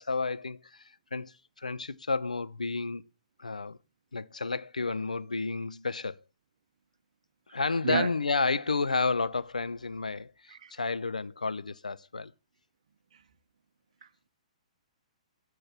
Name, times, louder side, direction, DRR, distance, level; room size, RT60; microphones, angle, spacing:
voice 1, 0.0-3.0 3.4-3.8 4.1-6.2 7.5-12.3, left 4 dB, 75° left, 0.4 m, -31 dB
voice 2, 7.5-8.1 10.5-10.8 13.1-13.2 14.0-14.3, right 7 dB, 55° right, 0.7 m, -34 dB
8.1 x 3.1 x 5.9 m
figure-of-eight pair, 120°, 4 cm